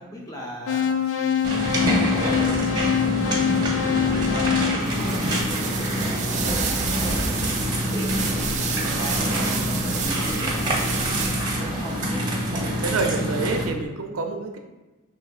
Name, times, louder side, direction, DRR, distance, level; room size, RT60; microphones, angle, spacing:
voice 1, 0.0-12.0, equal, 15° left, -2 dB, 0.7 m, -39 dB
sound 1, 0.7-5.8, left 8 dB, 80° left, 0.4 m, -25 dB
sound 2, 1.4-13.6, equal, 20° right, 0.8 m, -25 dB
sound 3, 4.8-11.7, right 6 dB, 35° right, 0.5 m, -31 dB
voice 2, 12.5-14.6, right 3 dB, 80° right, 4 dB, 0.6 m, -27 dB
5.5 x 3.3 x 2.4 m, 1.1 s
head